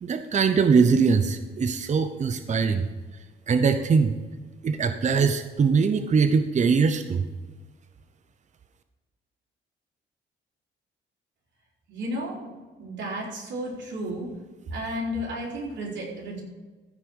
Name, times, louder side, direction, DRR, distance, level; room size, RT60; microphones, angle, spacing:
voice 1, 0.0-2.9 3.5-4.2 4.6-7.2, right 5 dB, 35° right, 9 dB, 0.7 m, -22 dB
voice 2, 11.9-12.5 12.8-14.3 14.7-16.4, equal, 65° right, -3 dB, 3.9 m, -32 dB
15.0 x 5.1 x 6.2 m, 1.3 s
cardioid pair, 90°, 20 cm